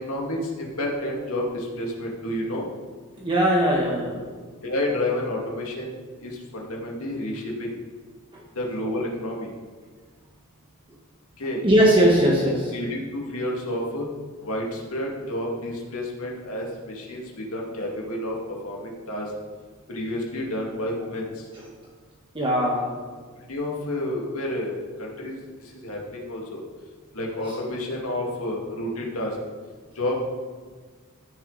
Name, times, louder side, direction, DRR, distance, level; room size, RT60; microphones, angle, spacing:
voice 1, 0.0-2.7 4.1-4.2 4.6-5.9 6.2-7.7 8.6-9.5 11.4-11.6 12.7-14.1 14.4-18.4 18.6-19.3 19.9-21.3 23.5-25.4 25.7-26.6 27.1-29.3 30.0-30.2, left 1 dB, 80° left, -2 dB, 2.2 m, -30 dB
voice 2, 3.2-4.2 8.3-8.4 11.6-12.7 22.3-22.9, equal, 25° right, -4 dB, 1.3 m, -20 dB
14.5 x 6.5 x 4.0 m, 1.5 s
head